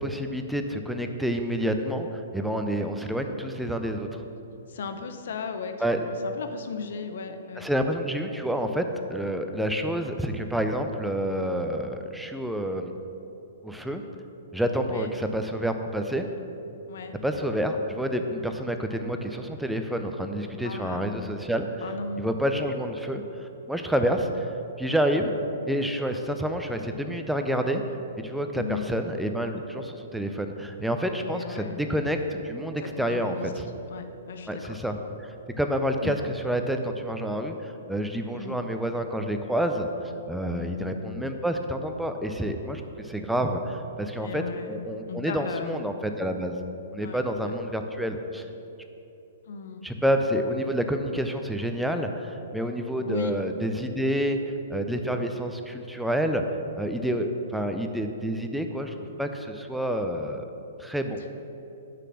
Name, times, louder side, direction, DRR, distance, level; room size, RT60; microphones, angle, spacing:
voice 1, 0.0-4.2 5.8-6.0 7.6-8.9 9.1-12.9 13.6-14.0 14.5-16.3 17.2-21.8 22.2-24.5 24.8-25.4 25.7-27.8 28.2-33.7 34.5-46.6 46.9-48.4 49.8-54.4 54.7-56.4 56.7-60.5 60.8-61.2, equal, ahead, 5 dB, 0.6 m, -28 dB
voice 2, 4.7-7.6 14.9-15.1 16.9-17.2 20.6-21.1 21.8-22.3 28.5-29.0 31.3-31.8 32.8-34.8 36.0-36.2 38.3-38.7 40.5-40.8 44.2-44.8 45.1-45.9 47.0-47.2 49.5-49.9 53.0-53.3, left 5 dB, 60° left, 7 dB, 0.7 m, -36 dB
6.5 x 6.0 x 6.3 m, 2.9 s
figure-of-eight pair, 115°, 0 cm